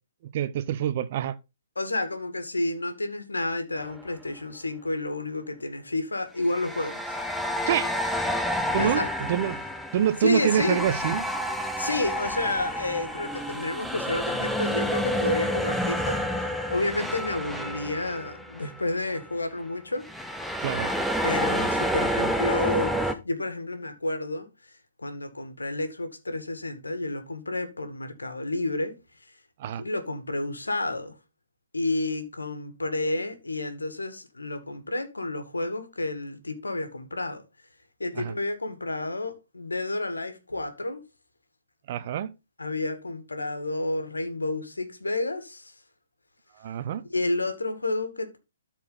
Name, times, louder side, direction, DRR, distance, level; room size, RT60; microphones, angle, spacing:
voice 1, 0.3-1.3 7.7-7.9 8.7-9.0 9.3-9.6 9.9-11.2 20.6-20.9 29.6-29.8 38.2-38.3 41.9-42.3 46.6-47.0, right 10 dB, 40° right, 0.9 m, -26 dB
voice 2, 1.8-7.2 8.5-9.1 10.2-10.8 11.8-16.2 16.7-20.1 21.2-24.7 25.0-28.9 29.2-29.3 29.8-31.1 31.7-37.4 38.0-41.0 42.6-45.7 47.1-48.4, left 2 dB, 80° left, 1.9 m, -30 dB
sound 1, 3.8-4.0 6.4-18.8 19.1-19.3 20.0-23.1, equal, ahead, 0.8 m, -29 dB
13.0 x 4.5 x 3.9 m
figure-of-eight pair, 130°, 0 cm